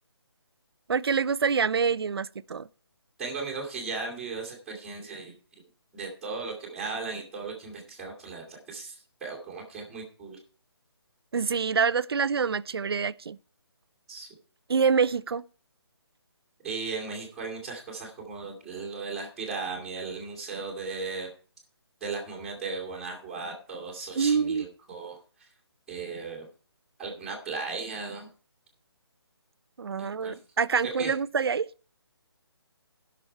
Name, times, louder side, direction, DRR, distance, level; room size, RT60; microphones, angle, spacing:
voice 1, 0.9-2.7 11.3-13.4 14.7-15.4 24.2-24.7 29.8-31.7, right 6 dB, 60° right, 0.5 m, -26 dB
voice 2, 3.2-5.3 5.9-10.4 14.1-14.3 16.6-21.3 22.0-25.5 25.9-26.5 27.0-28.3 30.0-30.4 31.0-31.1, right 4 dB, 5° right, 2.1 m, -36 dB
15.5 x 6.2 x 4.5 m
hypercardioid pair, 175°, 14 cm